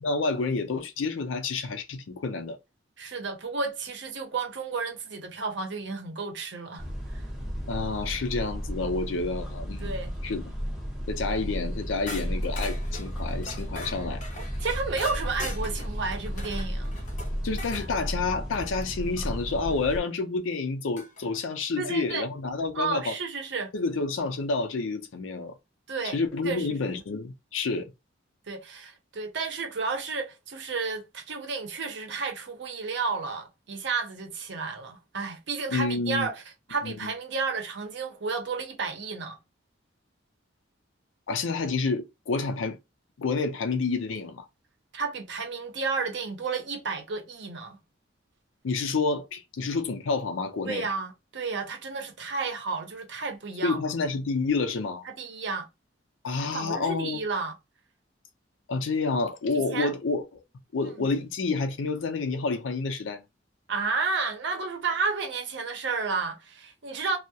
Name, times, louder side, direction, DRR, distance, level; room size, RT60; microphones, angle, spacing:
voice 1, 0.0-2.6 7.7-9.9 10.2-10.4 11.1-14.2 17.4-23.1 23.7-25.5 26.0-27.9 35.7-36.3 36.8-37.1 41.3-42.8 43.2-44.5 48.6-50.9 53.6-55.1 56.2-57.2 58.7-60.2 60.7-63.2, left 4 dB, 85° left, 0.5 m, -29 dB
voice 2, 3.0-6.8 7.1-7.3 9.8-10.1 14.6-17.0 21.8-22.3 22.7-23.7 25.9-26.2 26.4-26.9 28.5-36.4 36.7-39.4 44.9-47.8 50.6-53.8 55.2-55.7 56.4-57.5 59.7-59.9 61.0-61.1 63.7-67.2, right 4 dB, 65° right, 0.6 m, -32 dB
sound 1, 6.8-20.0, equal, ahead, 0.6 m, -34 dB
sound 2, 12.1-17.9 19.9-20.0 21.0-21.4, left 1 dB, 40° left, 0.6 m, -41 dB
2.2 x 2.0 x 2.7 m
head